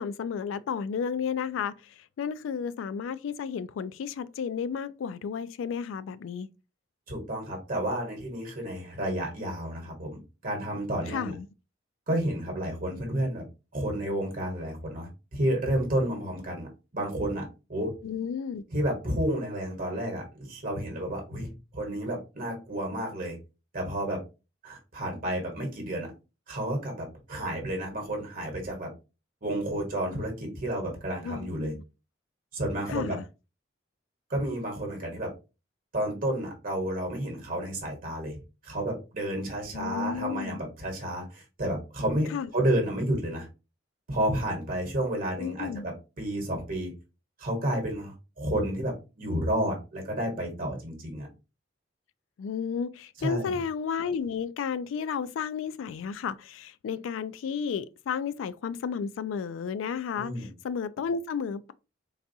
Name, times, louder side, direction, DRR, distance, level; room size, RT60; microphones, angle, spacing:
voice 1, 0.0-6.5 11.1-11.5 18.0-18.6 31.2-31.8 32.9-33.2 39.7-40.6 42.3-42.5 45.4-45.8 52.4-61.7, left 6 dB, 85° left, 0.3 m, -32 dB
voice 2, 7.1-11.3 12.1-13.4 13.7-17.9 18.7-23.4 23.7-24.2 24.6-26.1 26.5-28.9 29.4-31.7 32.5-33.2 34.3-35.3 35.9-43.5 44.1-46.9 47.4-51.3 53.2-53.5 60.2-60.5, right 1 dB, 45° right, 1.2 m, -31 dB
3.9 x 2.3 x 2.6 m
head